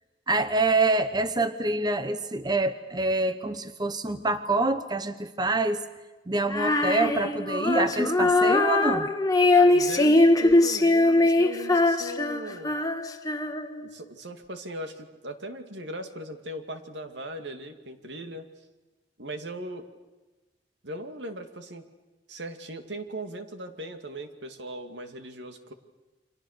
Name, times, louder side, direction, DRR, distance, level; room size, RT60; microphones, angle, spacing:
voice 1, 0.3-5.8 6.3-9.1, right 2 dB, 25° right, 11 dB, 0.9 m, -26 dB
Female singing, 6.5-13.9, left 2 dB, 20° left, 1.3 m, -22 dB
voice 2, 9.5-12.8 13.8-18.5 19.2-19.9 20.8-21.8 22.3-25.7, right 1 dB, 75° right, 7 dB, 2.3 m, -38 dB
30.0 x 25.5 x 6.6 m, 1.1 s
head